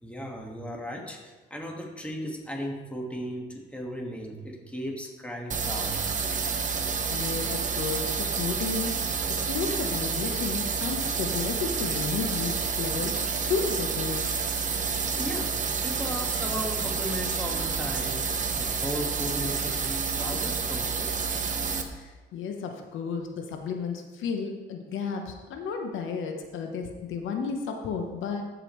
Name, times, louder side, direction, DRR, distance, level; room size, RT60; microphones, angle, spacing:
voice 1, 0.0-6.0 6.7-6.9 15.2-21.2, equal, 5° left, 0 dB, 1.6 m, -36 dB
sound 1, 5.5-21.8, right 5 dB, 40° right, 0.9 m, -29 dB
voice 2, 7.1-8.9 9.3-14.3 21.9-28.4, left 5 dB, 80° left, 4 dB, 0.9 m, -33 dB
14.0 x 5.1 x 3.1 m, 1.2 s
cardioid pair, 90°, 20 cm